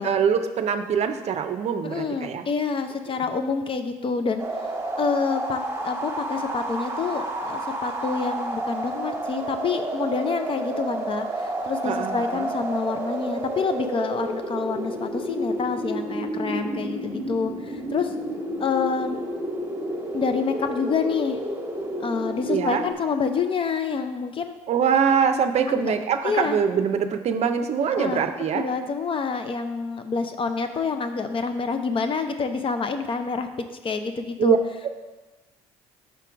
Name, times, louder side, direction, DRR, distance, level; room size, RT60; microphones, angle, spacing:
voice 1, 0.0-2.4 11.8-12.5 22.5-22.8 24.7-28.6 34.4-34.6, right 7 dB, 50° right, 8 dB, 0.5 m, -23 dB
voice 2, 1.8-4.4 5.0-18.1 18.6-19.2 20.1-21.4 22.0-24.5 25.7-25.9 26.2-26.6 28.0-33.5 33.8-34.6, left 5 dB, 40° left, 8 dB, 0.6 m, -27 dB
sound 1, 4.4-22.9, right 1 dB, 20° right, 1.2 m, -30 dB
5.2 x 4.4 x 5.0 m, 1.2 s
hypercardioid pair, 60°, 14 cm